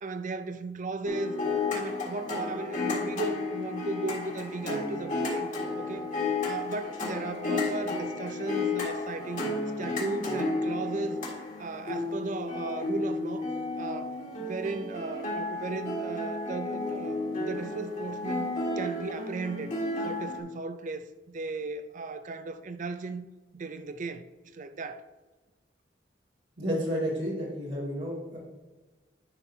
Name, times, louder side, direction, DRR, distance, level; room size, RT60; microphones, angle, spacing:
voice 1, 0.0-1.4 1.7-5.5 5.8-11.2 11.6-13.4 13.8-19.7 20.0-23.3 23.5-24.2 24.5-25.1, right 3 dB, 45° right, 0.5 m, -36 dB
sound 1, 1.0-20.4, left 3 dB, 45° left, 1.8 m, -32 dB
voice 2, 26.6-28.4, equal, 65° right, 2.2 m, -31 dB
10.5 x 6.0 x 2.7 m
head